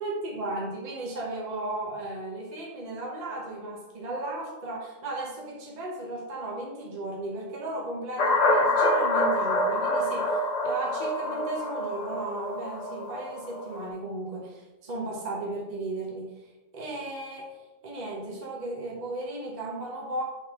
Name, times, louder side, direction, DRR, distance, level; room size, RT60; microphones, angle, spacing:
voice 1, 0.0-10.4 10.6-16.3 16.7-20.2, right 2 dB, 35° right, -3 dB, 1.1 m, -35 dB
sound 1, 8.2-13.8, left 1 dB, 40° left, 0.6 m, -26 dB
5.7 x 5.4 x 3.6 m, 1.1 s
omnidirectional pair, 1.4 m